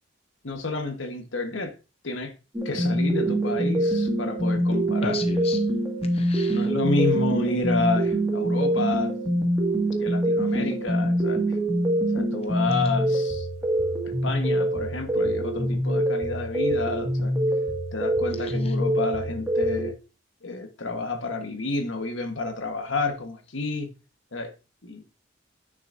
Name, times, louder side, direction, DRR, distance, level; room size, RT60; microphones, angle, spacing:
voice 1, 0.4-1.8 2.0-2.3 2.6-5.2 6.5-9.1 10.0-11.4 12.1-13.5 14.0-17.3 17.9-19.9 20.4-23.9 24.3-24.5 24.8-25.0, left 3 dB, 75° left, 1.4 m, -30 dB
sound 1, 2.5-19.9, right 1 dB, 10° right, 1.9 m, -25 dB
voice 2, 5.0-5.6 6.1-6.7 18.4-18.7, left 3 dB, 30° left, 0.6 m, -35 dB
9.7 x 6.2 x 2.7 m
head